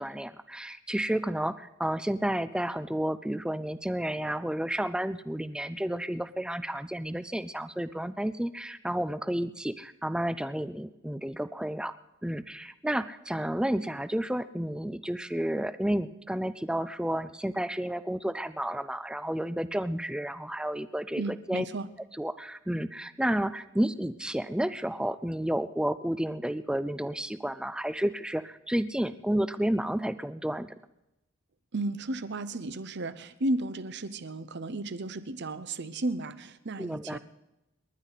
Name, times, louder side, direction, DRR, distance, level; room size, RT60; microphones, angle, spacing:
voice 1, 0.0-11.9 12.2-21.6 22.2-30.7 36.8-37.2, right 1 dB, 5° right, 13 dB, 0.5 m, -31 dB
voice 2, 21.2-21.9 31.7-37.2, right 2 dB, 55° right, 14 dB, 0.8 m, -33 dB
28.5 x 11.5 x 4.1 m, 0.93 s
head